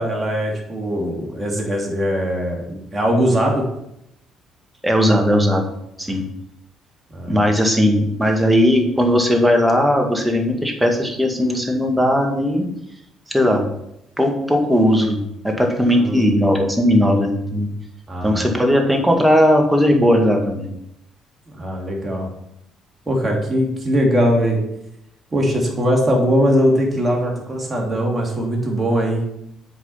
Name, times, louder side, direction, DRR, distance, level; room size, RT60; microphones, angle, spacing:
voice 1, 0.0-3.6 7.1-7.4 15.9-16.3 18.1-18.5 21.6-22.3 23.1-24.6 25.3-29.2, equal, 25° right, -1 dB, 2.9 m, -20 dB
voice 2, 4.8-5.7 6.0-6.2 7.3-12.7 13.3-13.6 14.2-15.2 15.4-17.7 18.2-20.7, equal, 10° right, 2 dB, 2.0 m, -17 dB
7.8 x 5.0 x 5.7 m, 0.80 s
supercardioid pair, 60°, 0 cm